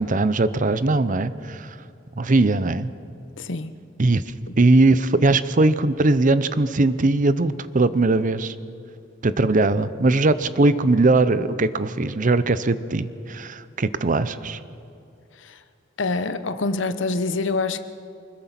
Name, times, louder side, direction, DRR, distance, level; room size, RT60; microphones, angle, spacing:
voice 1, 0.0-1.7 2.2-2.9 4.0-4.2 4.6-8.5 9.2-14.6, right 2 dB, 45° right, 14 dB, 0.7 m, -20 dB
voice 2, 3.4-3.7 15.4-15.6 16.0-17.8, left 3 dB, 70° left, 11 dB, 1.0 m, -26 dB
24.5 x 21.0 x 5.9 m, 2.5 s
head